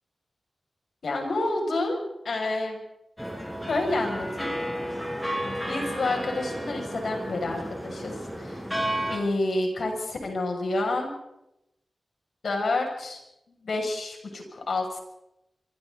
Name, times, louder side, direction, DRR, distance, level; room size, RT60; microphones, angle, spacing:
voice 1, 1.0-2.0 2.2-2.8 3.7-4.5 5.4-8.6 9.1-11.1 12.4-13.2 13.6-15.0, left 2 dB, 70° left, 1 dB, 7.1 m, -29 dB
sound 1, 3.2-9.2, equal, 5° left, 5.4 m, -32 dB
28.5 x 24.5 x 4.2 m, 0.85 s
wide cardioid pair, 130°, 0 cm